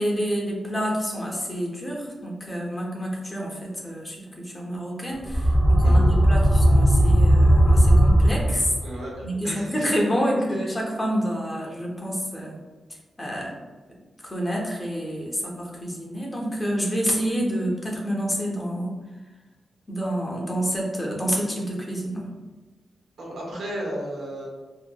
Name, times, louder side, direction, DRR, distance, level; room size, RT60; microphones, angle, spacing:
voice 1, 0.0-8.7 9.2-12.6 13.2-13.5 14.2-18.9 19.9-22.3, equal, 15° left, -2 dB, 0.6 m, -28 dB
sound 1, 5.2-9.0, equal, 15° right, 0.8 m, -17 dB
voice 2, 5.8-6.1 8.8-9.9 13.3-13.4 23.2-24.5, right 1 dB, 85° right, -4 dB, 0.8 m, -34 dB
2.7 x 2.6 x 2.2 m, 1.3 s
wide cardioid pair, 120°, 0 cm